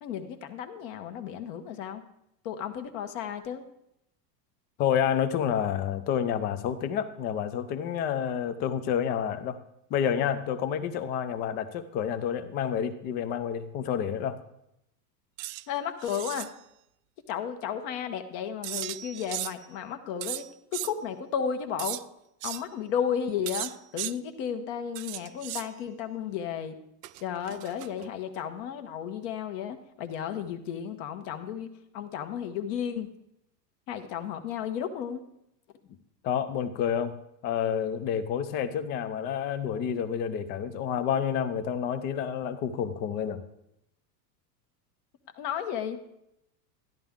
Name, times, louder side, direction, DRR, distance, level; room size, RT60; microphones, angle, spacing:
voice 1, 0.0-2.0 2.4-3.6 15.7-16.5 17.3-22.0 22.4-26.8 27.2-33.1 33.9-35.2 45.3-46.0, left 8 dB, 50° left, 7 dB, 1.1 m, -33 dB
voice 2, 4.8-9.6 9.9-14.4 36.2-37.1 37.4-43.4, left 8 dB, 20° left, 10 dB, 0.4 m, -29 dB
sound 1, 15.4-15.6 16.0-16.5 18.6-19.7 20.2-20.9 21.8-22.0 22.4-22.6 23.5-24.1 24.9-25.7 27.0-28.1, right 16 dB, 70° right, 0.6 m, -36 dB
13.0 x 10.5 x 3.6 m, 0.80 s
supercardioid pair, 145°, 50 cm